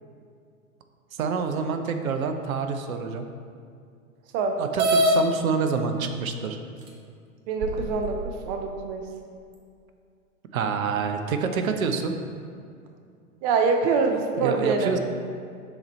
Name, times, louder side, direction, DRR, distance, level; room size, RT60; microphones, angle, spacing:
voice 1, 1.2-3.2 4.6-6.6 10.5-12.1 14.4-15.0, right 5 dB, 75° right, 6 dB, 0.7 m, -27 dB
sound 1, 4.8-5.2 6.1-6.2 6.9-7.0 7.6-8.3, right 1 dB, 45° right, 1.0 m, -22 dB
voice 2, 7.5-9.0 13.4-15.0, right 4 dB, 30° right, 4 dB, 0.4 m, -25 dB
5.9 x 4.0 x 4.0 m, 2.3 s
hypercardioid pair, 100°, 43 cm